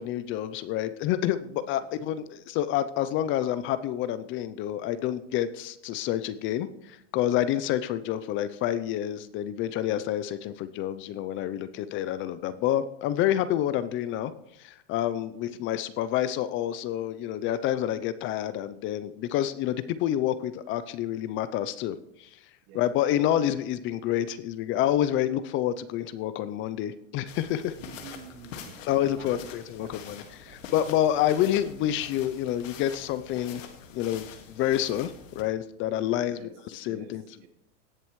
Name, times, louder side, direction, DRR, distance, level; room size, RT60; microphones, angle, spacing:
voice 1, 0.0-14.3 14.6-22.4 22.7-27.8 28.9-33.6 33.9-36.4 36.7-37.2, left 11 dB, 30° left, 14 dB, 0.5 m, -28 dB
voice 2, 11.4-11.9 22.7-23.0 27.8-30.6 35.8-36.6 36.9-37.5, right 7 dB, 45° right, 7 dB, 1.5 m, -50 dB
sound 1, 27.3-35.4, left 7 dB, 85° left, 1.9 m, -45 dB
18.0 x 7.5 x 3.1 m, 0.78 s
supercardioid pair, 130°, 38 cm